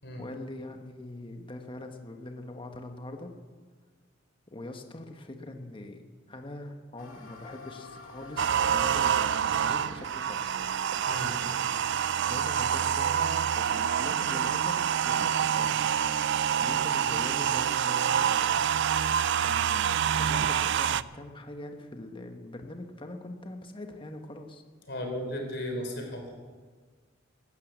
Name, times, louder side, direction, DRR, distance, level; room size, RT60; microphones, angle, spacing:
voice 1, 0.2-3.3 4.5-6.0 6.3-10.6 12.2-15.8 16.6-18.6 19.4-24.6, left 2 dB, 25° left, 5 dB, 1.2 m, -42 dB
sound 1, 7.0-12.0, left 3 dB, 80° left, 2.3 m, -48 dB
sound 2, 8.4-21.0, right 8 dB, 60° right, 0.4 m, -27 dB
voice 2, 24.9-26.3, left 1 dB, 55° left, 3 dB, 3.7 m, -35 dB
13.5 x 12.0 x 8.1 m, 1.5 s
head